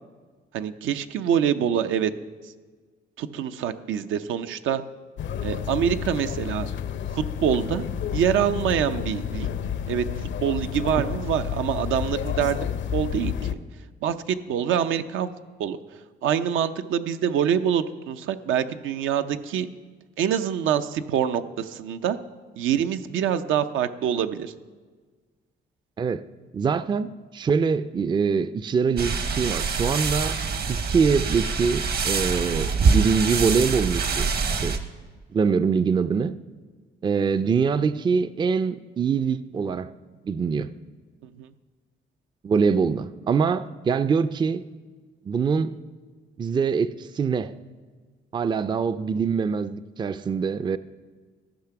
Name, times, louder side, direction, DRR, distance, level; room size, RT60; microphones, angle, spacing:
voice 1, 0.5-2.1 3.2-4.8 5.4-6.7 7.1-7.8 8.1-9.5 9.9-10.1 10.4-12.6 12.9-13.5 14.0-15.3 15.6-15.8 16.2-19.7 20.2-22.2 22.6-24.5 41.4-41.5, right 9 dB, 80° right, 10 dB, 0.6 m, -25 dB
sound 1, 5.2-13.5, left 9 dB, 70° left, 0.6 m, -30 dB
voice 2, 26.5-30.4 30.7-34.3 34.6-34.7 35.3-36.3 37.0-39.9 40.3-40.7 42.4-44.6 45.3-45.7 46.4-47.5 48.3-50.8, right 5 dB, 25° right, 14 dB, 0.3 m, -24 dB
sound 2, 29.0-34.8, right 5 dB, 50° right, 1.0 m, -25 dB
14.0 x 5.8 x 5.8 m, 1.4 s
cardioid pair, 90°, 20 cm